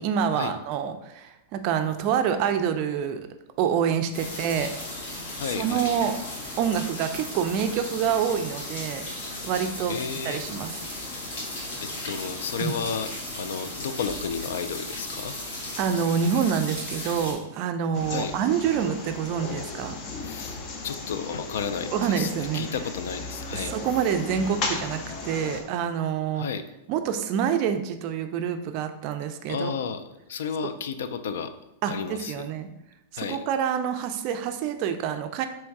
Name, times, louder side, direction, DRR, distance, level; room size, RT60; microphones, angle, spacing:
voice 1, 0.0-3.2 3.6-4.7 5.6-6.2 6.6-9.0 9.4-10.8 12.6-12.8 15.8-20.0 21.9-22.7 23.5-26.5 26.9-29.8 31.8-32.7 33.1-35.5, right 8 dB, 35° right, 7 dB, 0.4 m, -27 dB
sound 1, 4.1-17.3, left 1 dB, 55° left, 1.5 m, -36 dB
voice 2, 5.4-5.9 9.9-10.4 11.8-15.4 18.1-18.3 20.2-20.6 20.8-23.7 26.3-26.6 29.5-31.5 31.9-32.5 33.2-33.4, left 6 dB, 80° left, 10 dB, 0.4 m, -32 dB
sound 2, 17.9-25.6, left 3 dB, 30° left, 0.6 m, -35 dB
3.6 x 3.1 x 4.6 m, 0.89 s
supercardioid pair, 165°, 0 cm